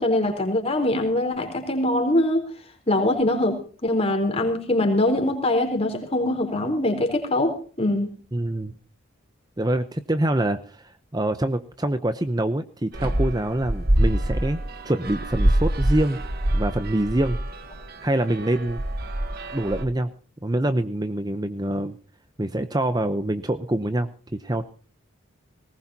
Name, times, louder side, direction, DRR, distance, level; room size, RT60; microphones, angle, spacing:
voice 1, 0.0-2.5 2.9-8.1, left 1 dB, 30° left, 4 dB, 3.9 m, -23 dB
voice 2, 8.3-8.7 9.6-16.2 16.5-17.4 18.0-18.8 19.5-20.1 20.4-22.0 22.4-24.6, right 1 dB, 20° right, 10 dB, 0.7 m, -25 dB
sound 1, 12.9-19.8, right 1 dB, 50° right, 1.5 m, -25 dB
20.0 x 19.0 x 2.8 m, 0.39 s
head